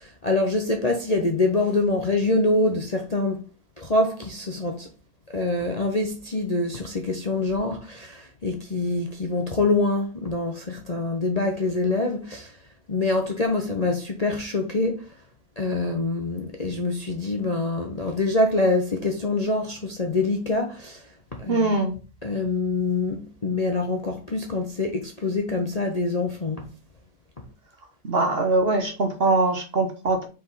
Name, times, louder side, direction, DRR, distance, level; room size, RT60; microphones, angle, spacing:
voice 1, 0.0-3.4 3.8-4.9 5.3-12.5 12.9-15.0 15.6-21.0 21.4-21.8 22.2-26.7, left 2 dB, 35° left, 0.7 m, -25 dB
voice 2, 21.5-21.9 28.0-30.3, right 2 dB, 45° right, 1.0 m, -22 dB
5.0 x 5.0 x 4.0 m
omnidirectional pair, 1.7 m